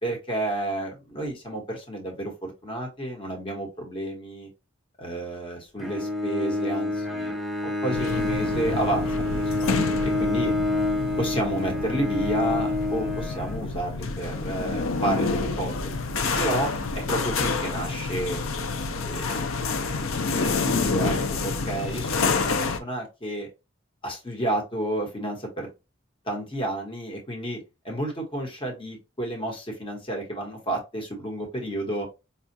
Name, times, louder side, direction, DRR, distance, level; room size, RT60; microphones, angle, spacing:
voice 1, 0.0-4.5 5.0-7.3 7.6-9.8 10.0-10.5 11.2-15.9 16.4-18.4 19.0-19.4 20.3-21.2 21.4-23.5 24.0-25.7 26.3-27.6 27.8-32.1, right 1 dB, 25° left, 1 dB, 1.1 m, -31 dB
Bowed string instrument, 5.8-14.0, left 2 dB, ahead, 0.7 m, -28 dB
sound 1, 7.9-22.8, left 4 dB, 75° left, 0.5 m, -28 dB
5.5 x 2.3 x 2.7 m, 0.26 s
head